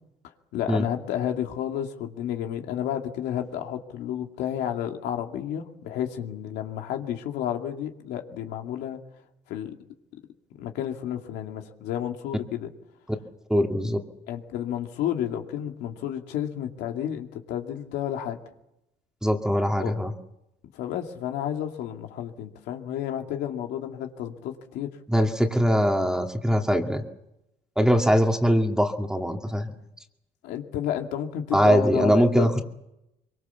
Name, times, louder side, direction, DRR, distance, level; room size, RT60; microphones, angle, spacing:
voice 1, 0.5-9.0 9.5-9.7 10.6-12.7 14.3-18.4 19.8-19.9 20.7-24.9 30.4-32.5, left 10 dB, 85° left, 3 dB, 2.4 m, -31 dB
voice 2, 13.5-14.0 19.2-20.1 25.1-27.0 27.8-29.7 31.5-32.6, equal, 5° right, 3 dB, 2.3 m, -22 dB
23.5 x 23.0 x 7.2 m, 0.87 s
cardioid pair, 110°, 17 cm